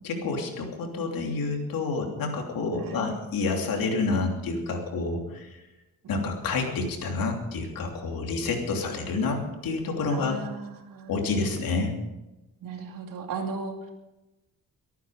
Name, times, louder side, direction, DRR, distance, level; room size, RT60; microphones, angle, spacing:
voice 1, 0.0-5.5 6.1-10.3 11.1-12.0, left 3 dB, 85° left, 2 dB, 3.1 m, -28 dB
voice 2, 10.1-11.2 12.6-13.9, right 4 dB, 75° right, 3 dB, 2.6 m, -36 dB
23.5 x 9.3 x 5.1 m, 1.0 s
cardioid pair, 125°, 34 cm